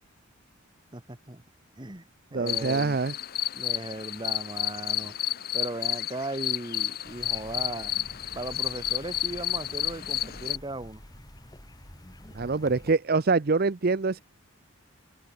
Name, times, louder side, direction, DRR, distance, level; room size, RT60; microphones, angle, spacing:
voice 1, 0.9-1.4 1.8-2.0 2.3-3.0 3.5-5.1 5.5-7.9 8.3-11.0, right 2 dB, 20° right, 1.4 m, -37 dB
voice 2, 2.3-3.1 12.3-14.2, right 4 dB, 45° right, 0.6 m, -25 dB
sound 1, 2.5-10.6, left 12 dB, 45° left, 0.8 m, -31 dB
sound 2, 7.0-12.9, left 1 dB, 20° left, 3.3 m, -48 dB
head